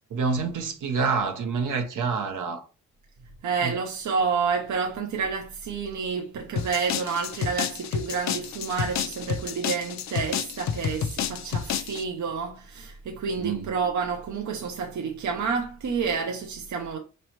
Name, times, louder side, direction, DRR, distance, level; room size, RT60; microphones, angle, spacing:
voice 1, 0.0-2.7 3.6-3.8 13.4-13.7, right 5 dB, 90° right, 1.0 m, -27 dB
voice 2, 3.4-17.0, right 5 dB, 70° right, 0.7 m, -29 dB
sound 1, 6.6-12.0, left 8 dB, 65° left, 0.5 m, -30 dB
5.2 x 3.2 x 2.9 m
wide cardioid pair, 150°, 30 cm